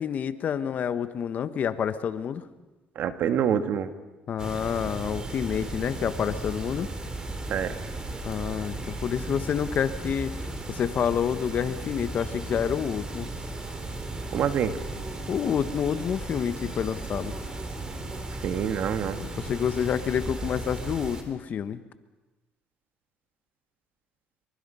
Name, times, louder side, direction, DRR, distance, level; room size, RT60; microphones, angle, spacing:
voice 1, 0.0-2.4 4.3-6.9 8.2-10.3 10.7-13.3 15.3-17.3 19.2-21.8, left 8 dB, 50° left, 12 dB, 1.2 m, -28 dB
voice 2, 2.9-3.9 7.5-7.7 14.3-14.7 18.4-19.2, right 8 dB, 60° right, 9 dB, 1.7 m, -26 dB
sound 1, 4.4-21.2, right 2 dB, 20° right, 3.4 m, -36 dB
26.0 x 23.5 x 5.7 m, 1.1 s
cardioid pair, 105°, 4 cm